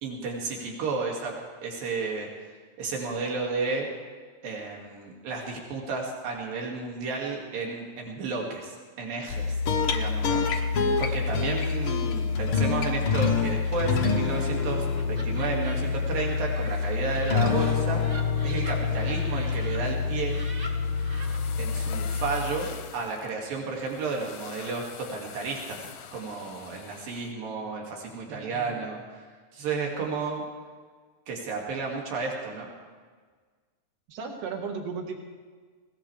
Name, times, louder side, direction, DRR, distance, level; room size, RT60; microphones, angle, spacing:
voice 1, 0.0-1.3 1.6-2.3 2.8-3.9 4.4-9.6 9.9-10.7 11.0-18.0 18.4-20.4 21.6-25.8 26.1-29.3 29.5-30.4 31.3-32.7, right 4 dB, 80° right, -1 dB, 4.1 m, -32 dB
sound 1, 9.3-22.9, left 5 dB, 75° left, 1.2 m, -27 dB
Laughter, 13.6-19.8 20.1-21.4, right 1 dB, 30° right, 1.5 m, -45 dB
sound 2, 20.5-27.3, left 9 dB, 90° left, 2.8 m, -45 dB
voice 2, 28.3-28.8 34.1-35.2, right 5 dB, 55° right, 2 dB, 2.5 m, -35 dB
21.0 x 18.0 x 3.4 m, 1.5 s
omnidirectional pair, 4.1 m